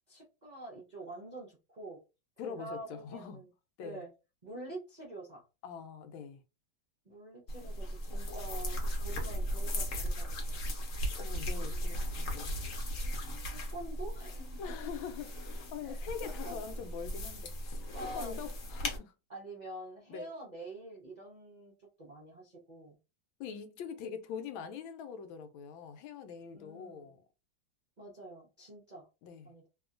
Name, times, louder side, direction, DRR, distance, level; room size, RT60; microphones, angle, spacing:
voice 1, 0.1-2.0 2.4-3.5 3.8-4.1 4.4-5.4 7.0-10.6 11.6-12.1 13.5-14.5 15.8-16.0 16.4-16.8 17.9-18.4 19.3-23.0 26.5-27.1 28.0-29.1 29.4-29.6, right 2 dB, 45° right, 0.5 m, -47 dB
voice 2, 2.4-3.4 3.8-4.0 5.6-6.4 11.1-12.6 14.6-19.1 20.1-20.3 23.4-27.2 29.2-29.5, left 7 dB, 85° left, 1.4 m, -43 dB
sound 1, 7.5-19.0, equal, 55° left, 0.9 m, -37 dB
3.0 x 2.8 x 2.5 m
omnidirectional pair, 2.1 m